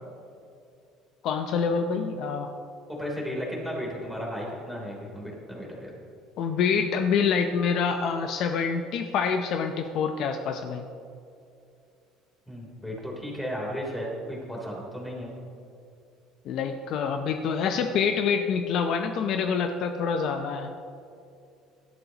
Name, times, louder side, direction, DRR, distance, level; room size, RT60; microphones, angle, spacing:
voice 1, 1.2-2.5 6.4-10.9 16.5-20.7, left 6 dB, 55° left, 6 dB, 0.7 m, -26 dB
voice 2, 2.9-5.9 12.5-15.3, equal, 5° left, -3 dB, 3.3 m, -34 dB
18.5 x 12.0 x 2.9 m, 2.5 s
cardioid pair, 140°, 0 cm